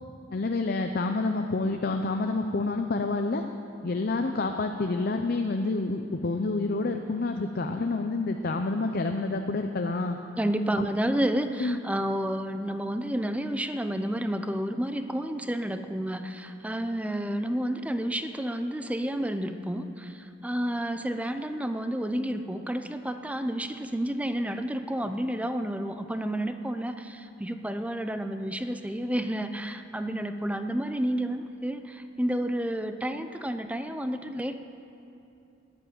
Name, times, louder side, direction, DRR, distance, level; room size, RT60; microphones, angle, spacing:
voice 1, 0.3-3.4 3.8-10.2 10.8-10.9 11.6-11.8, left 3 dB, 50° left, 5 dB, 0.6 m, -28 dB
voice 2, 10.4-34.5, right 1 dB, 5° right, 8 dB, 0.6 m, -30 dB
11.5 x 10.5 x 9.1 m, 2.7 s
head